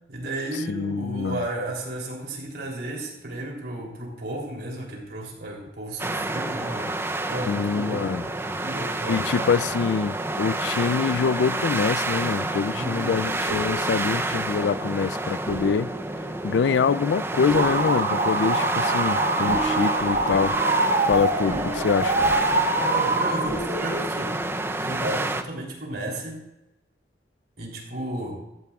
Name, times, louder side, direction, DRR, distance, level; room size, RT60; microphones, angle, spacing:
voice 1, 0.1-7.0 7.3-9.5 12.7-13.3 22.7-24.4 24.8-26.5 27.6-28.4, right 1 dB, 60° right, 3.2 m, -33 dB
voice 2, 0.7-1.4 7.5-8.2 9.1-15.9 16.4-20.6 21.0-22.1, left 6 dB, 80° left, 0.4 m, -25 dB
sound 1, 6.0-25.4, right 2 dB, 15° right, 0.5 m, -29 dB
sound 2, 13.1-23.2 23.5-24.3, right 1 dB, 60° left, 4.5 m, -38 dB
sound 3, 17.5-23.5, right 2 dB, 45° right, 1.7 m, -24 dB
15.5 x 14.0 x 2.4 m
head